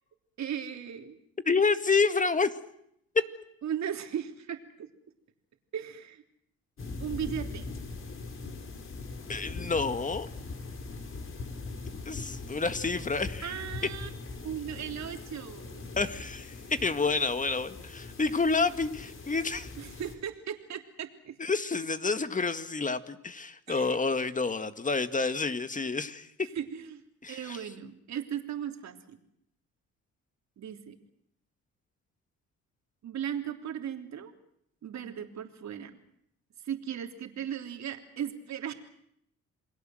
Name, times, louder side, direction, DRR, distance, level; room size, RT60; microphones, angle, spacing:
voice 1, 0.4-1.2 3.6-4.9 5.7-6.2 7.0-7.7 13.4-14.1 14.4-15.9 19.8-21.4 23.7-24.0 26.5-29.2 30.6-31.0 33.0-34.3 34.8-36.0 36.6-38.7, right 9 dB, 65° right, 6 dB, 3.4 m, -37 dB
voice 2, 1.5-2.5 9.3-10.3 12.1-13.4 16.0-16.6 16.8-19.7 21.4-26.3 27.2-27.6, left 4 dB, 25° left, 11 dB, 1.9 m, -29 dB
sound 1, 6.8-20.2, left 3 dB, 45° left, 4.6 m, -41 dB
29.0 x 21.0 x 7.8 m, 0.73 s
cardioid pair, 90°, 30 cm